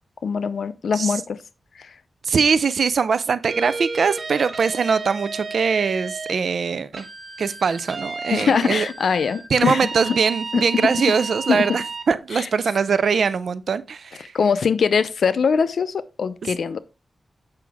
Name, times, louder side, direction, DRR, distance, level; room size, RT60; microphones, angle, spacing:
voice 1, 0.2-1.4 1.8-1.9 8.3-10.2 10.5-10.9 11.5-11.6 12.3-12.5 14.2-16.8, left 6 dB, 80° left, 0.6 m, -22 dB
voice 2, 2.2-7.0 7.4-8.9 9.5-14.3 16.4-16.5, right 5 dB, 75° right, 0.6 m, -22 dB
sound 1, 3.5-6.4 6.9-12.1, right 4 dB, 50° right, 1.7 m, -33 dB
7.7 x 6.0 x 3.5 m
cardioid pair, 75°, 0 cm